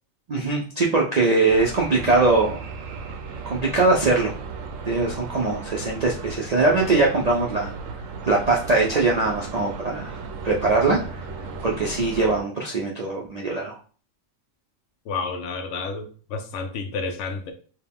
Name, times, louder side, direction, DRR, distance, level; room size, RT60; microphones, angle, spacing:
voice 1, 0.3-2.6 3.5-4.3 4.9-7.7 8.2-10.2 10.4-11.2 11.6-13.8, right 3 dB, 55° right, -2 dB, 0.4 m, -21 dB
sound 1, 1.5-12.4, right 4 dB, 80° right, 1.0 m, -35 dB
voice 2, 15.1-17.5, left 4 dB, 70° left, 6 dB, 0.9 m, -30 dB
4.3 x 2.2 x 3.5 m, 0.41 s
omnidirectional pair, 1.3 m